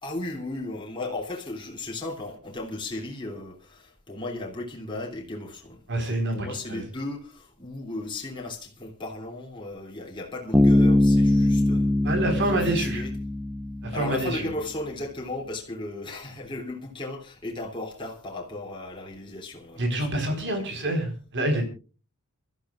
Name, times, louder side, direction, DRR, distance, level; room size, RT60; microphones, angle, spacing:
voice 1, 0.0-13.1 13.9-20.9, left 2 dB, 20° left, 3.0 m, -36 dB
voice 2, 5.9-6.8 12.0-13.0 13.8-14.5 19.8-21.7, right 1 dB, 55° right, 4.3 m, -27 dB
Bass guitar, 10.5-14.2, left 1 dB, 5° right, 0.8 m, -21 dB
28.0 x 13.5 x 2.4 m
head